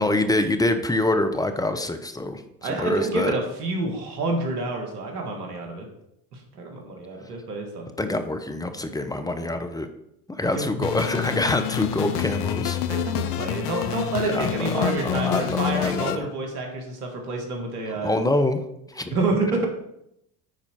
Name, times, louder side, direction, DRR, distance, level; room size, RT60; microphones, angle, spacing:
voice 1, 0.0-3.3 8.0-9.9 10.4-12.8 14.2-16.3 18.0-18.6 18.9-19.1, left 2 dB, 10° left, 7 dB, 0.9 m, -25 dB
voice 2, 2.6-5.9 6.3-7.9 10.5-10.9 12.9-18.2 19.1-19.7, right 3 dB, 80° right, 2 dB, 1.8 m, -28 dB
sound 1, 10.8-16.1, left 12 dB, 80° left, 0.7 m, -28 dB
10.0 x 4.3 x 4.4 m, 0.80 s
hypercardioid pair, 70°, 45 cm